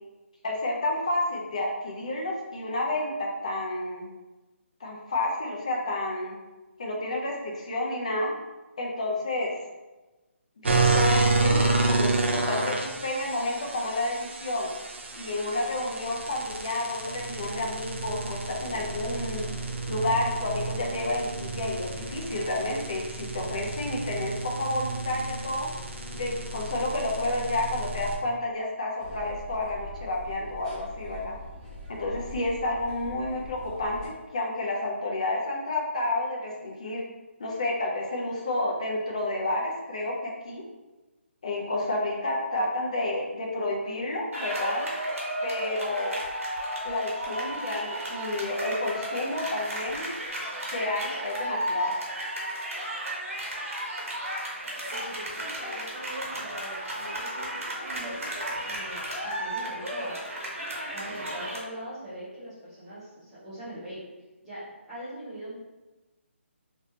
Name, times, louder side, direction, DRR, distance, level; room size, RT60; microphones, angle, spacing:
voice 1, 0.4-4.1 4.8-6.4 6.8-8.3 8.8-9.5 10.6-14.7 15.2-19.5 19.9-25.7 26.1-31.4 31.9-37.0 37.4-40.6 41.4-44.9 45.4-46.2 46.8-50.1 50.7-52.0, left 2 dB, 30° left, -2 dB, 0.6 m, -30 dB
sound 1, 10.6-28.1, right 3 dB, 60° right, 0.6 m, -30 dB
sound 2, 29.0-34.1, left 1 dB, 25° right, 1.1 m, -43 dB
sound 3, 44.3-61.6, right 1 dB, 80° right, 1.2 m, -34 dB
voice 2, 54.9-57.5 57.8-58.3 58.6-60.3 60.9-64.0 64.4-65.6, right 1 dB, 5° right, -17 dB, 1.0 m, -42 dB
3.3 x 3.1 x 2.8 m, 1.1 s
hypercardioid pair, 180°, 7 cm